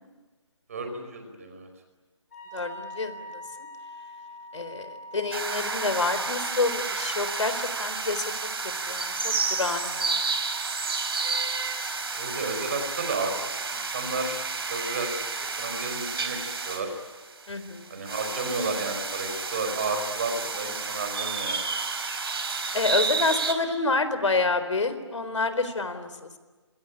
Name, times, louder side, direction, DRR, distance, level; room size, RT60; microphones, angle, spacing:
voice 1, 0.7-1.7 12.1-15.3 15.6-16.9 17.9-21.7, right 3 dB, 30° right, 6 dB, 5.0 m, -32 dB
Wind instrument woodwind instrument, 2.3-6.7, left 1 dB, 30° left, 8.0 m, -43 dB
voice 2, 2.5-3.4 4.5-8.3 8.9-10.3 17.5-17.9 22.7-26.4, left 3 dB, 75° left, 11 dB, 4.0 m, -28 dB
sound 1, 5.3-23.5, right 4 dB, 50° right, 3.6 m, -31 dB
26.5 x 22.5 x 10.0 m, 1.3 s
hypercardioid pair, 175°, 16 cm